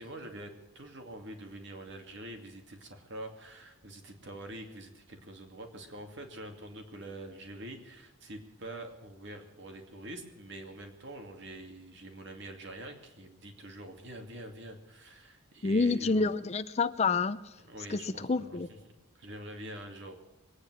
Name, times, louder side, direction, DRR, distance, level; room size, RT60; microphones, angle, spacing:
voice 1, 0.0-16.3 17.6-18.6 19.2-20.2, right 1 dB, 55° right, 2.4 m, -45 dB
voice 2, 15.6-17.5 17.9-18.7, left 4 dB, 30° left, 0.5 m, -28 dB
22.5 x 9.6 x 6.3 m
head